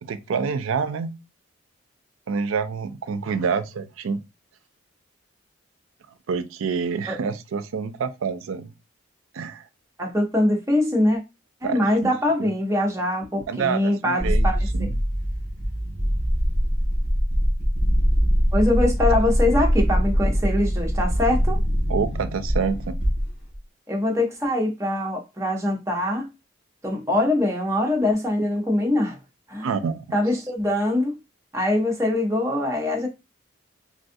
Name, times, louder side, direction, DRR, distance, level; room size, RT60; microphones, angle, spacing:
voice 1, 0.0-1.1 2.3-4.2 6.3-8.7 9.3-9.7 11.6-12.1 13.5-14.5 14.7-15.0 21.9-23.0 29.6-30.0, right 5 dB, 85° right, 0.4 m, -27 dB
voice 2, 10.0-11.2 11.6-14.9 18.5-21.6 23.9-26.3 26.8-29.2 29.5-29.7 30.1-31.1 31.5-33.1, left 1 dB, 15° right, 0.7 m, -23 dB
sound 1, 14.2-23.6, equal, 55° left, 1.9 m, -22 dB
3.5 x 2.3 x 2.6 m
head